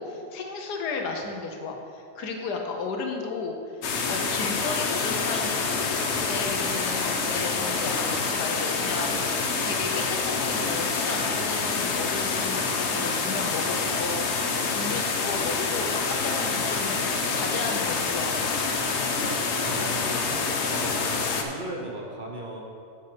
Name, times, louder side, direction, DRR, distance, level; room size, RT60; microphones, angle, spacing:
voice 1, 0.0-3.6 4.1-5.7 6.3-9.1 9.6-14.3 14.7-18.3, left 4 dB, 80° left, 3 dB, 1.5 m, -34 dB
sound 1, 3.8-21.4, left 4 dB, 55° left, 0.9 m, -27 dB
voice 2, 19.4-22.6, right 1 dB, 35° right, -2 dB, 1.0 m, -37 dB
8.2 x 6.7 x 5.1 m, 2.5 s
omnidirectional pair, 1.7 m